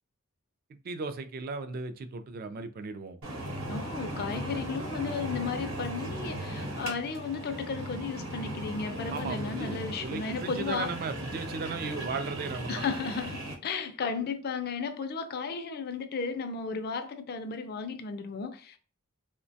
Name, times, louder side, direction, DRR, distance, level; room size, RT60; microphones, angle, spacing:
voice 1, 0.8-3.2 9.1-12.8, right 4 dB, 45° right, 0.3 m, -36 dB
sound 1, 3.2-13.5, right 1 dB, 80° right, 0.9 m, -37 dB
voice 2, 3.7-10.9 12.7-18.8, left 5 dB, 50° left, 0.4 m, -34 dB
3.0 x 2.1 x 2.6 m
head